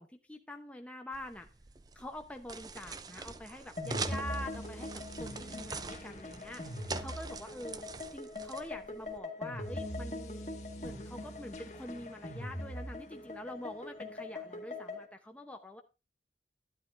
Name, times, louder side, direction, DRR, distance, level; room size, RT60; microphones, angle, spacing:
voice 1, 0.0-1.5 1.9-10.4 10.8-15.8, left 1 dB, 5° left, 4 dB, 0.8 m, -46 dB
sound 1, 1.1-9.2, right 4 dB, 20° right, 0.5 m, -44 dB
sound 2, 3.8-15.1, left 1 dB, 40° left, 1.7 m, -41 dB
11.5 x 10.0 x 2.5 m, 0.28 s
head